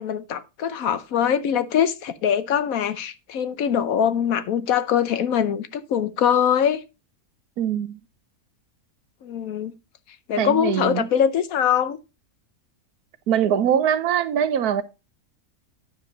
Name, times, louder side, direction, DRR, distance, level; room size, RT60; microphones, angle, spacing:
voice 1, 0.0-6.8 9.2-9.7 10.3-12.0, left 8 dB, 70° left, 1.1 m, -23 dB
voice 2, 7.6-8.0 10.4-11.1 13.3-14.8, right 9 dB, 80° right, 1.3 m, -22 dB
9.6 x 6.8 x 3.9 m
omnidirectional pair, 1.6 m